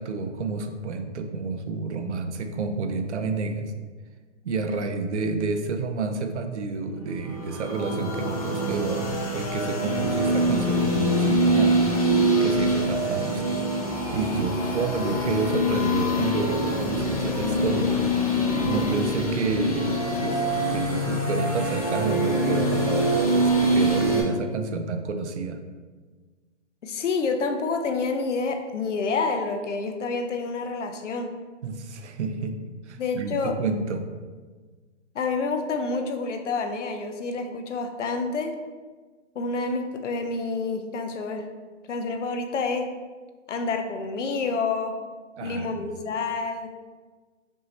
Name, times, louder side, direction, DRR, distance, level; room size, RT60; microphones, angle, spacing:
voice 1, 0.0-3.7 4.4-9.0 9.3-11.8 12.4-13.4 14.1-17.9 18.6-19.9 20.2-25.6 31.6-32.6 32.9-34.0 45.4-45.8, right 4 dB, 70° right, 6 dB, 0.6 m, -29 dB
sound 1, 7.3-24.2, equal, 30° left, 0.5 m, -24 dB
voice 2, 26.8-31.3 33.0-33.5 35.1-38.5 39.4-41.4 41.9-42.9 43.5-45.0 45.4-46.7, left 4 dB, 80° left, 6 dB, 0.7 m, -28 dB
5.3 x 2.8 x 3.2 m, 1.4 s
hypercardioid pair, 180°, 36 cm